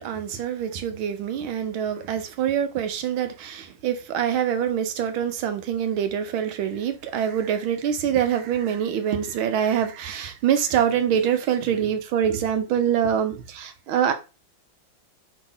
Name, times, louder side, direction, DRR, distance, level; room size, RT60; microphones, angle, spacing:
voice 1, 0.0-14.1, right 9 dB, 85° right, 1.6 m, -25 dB
5.2 x 3.5 x 5.5 m
omnidirectional pair, 2.2 m